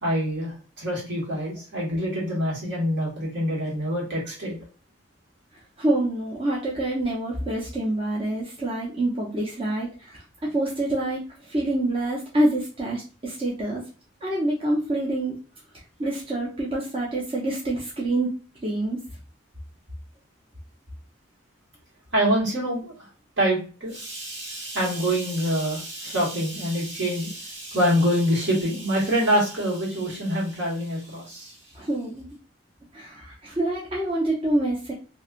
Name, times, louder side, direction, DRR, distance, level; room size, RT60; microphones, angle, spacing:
voice 1, 0.0-4.6 22.1-22.9 23.4-31.6, equal, 70° right, -5 dB, 1.6 m, -25 dB
voice 2, 5.8-13.8 14.2-15.4 16.0-19.0 31.7-32.3 32.9-34.9, right 1 dB, 30° right, -4 dB, 0.6 m, -26 dB
3.1 x 2.6 x 2.4 m, 0.36 s
head